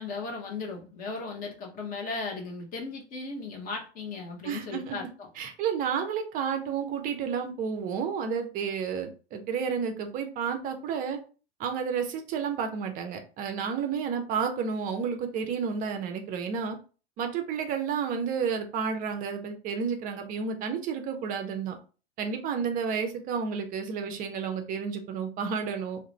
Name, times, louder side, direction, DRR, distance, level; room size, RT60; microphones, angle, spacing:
voice 1, 0.0-5.3, left 4 dB, 25° left, 1 dB, 0.6 m, -36 dB
voice 2, 4.4-5.0 5.4-11.2 11.6-16.8 17.2-21.8 22.2-26.0, right 6 dB, 25° right, 5 dB, 0.4 m, -31 dB
2.3 x 2.0 x 2.9 m, 0.36 s
figure-of-eight pair, 85°, 33 cm